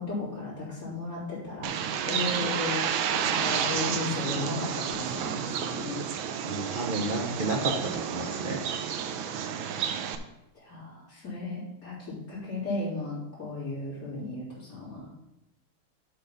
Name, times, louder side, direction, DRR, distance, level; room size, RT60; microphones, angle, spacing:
voice 1, 0.0-1.8 2.1-6.0 10.5-15.1, left 2 dB, 45° left, -7 dB, 4.0 m, -35 dB
Bird, 1.6-10.2, right 8 dB, 75° right, 1.4 m, -31 dB
voice 2, 6.4-8.6, right 2 dB, 55° right, 2 dB, 0.5 m, -31 dB
11.5 x 3.9 x 5.5 m, 0.93 s
omnidirectional pair, 2.2 m